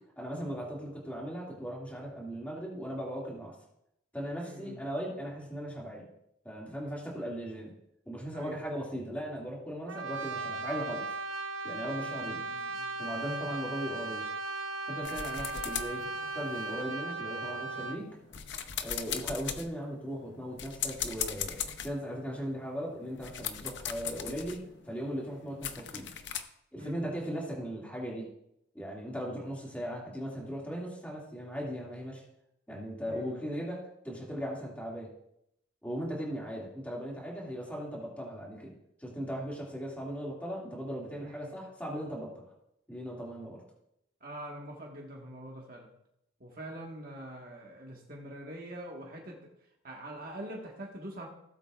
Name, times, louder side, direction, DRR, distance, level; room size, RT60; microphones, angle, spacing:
voice 1, 0.2-3.5 4.1-6.1 6.4-7.7 8.1-11.1 11.6-12.4 13.0-14.2 14.9-16.0 16.3-18.1 18.8-21.6 21.8-24.6 24.8-26.1 26.7-28.3 28.7-32.2 32.7-33.8 34.0-35.1 35.8-38.7 39.0-42.4 42.9-43.6, equal, 5° left, -4 dB, 2.3 m, -38 dB
voice 2, 4.4-4.8 8.3-8.6 12.0-13.5 26.8-27.0 33.1-33.3 41.2-41.5 44.2-45.9 46.4-49.4 49.8-51.3, right 1 dB, 45° right, -1 dB, 1.7 m, -44 dB
Brass instrument, 9.9-18.1, right 3 dB, 75° right, 0.9 m, -37 dB
sound 1, 15.0-16.9 17.5-26.4, left 8 dB, 55° left, 0.7 m, -40 dB
17.5 x 7.9 x 2.5 m, 0.79 s
head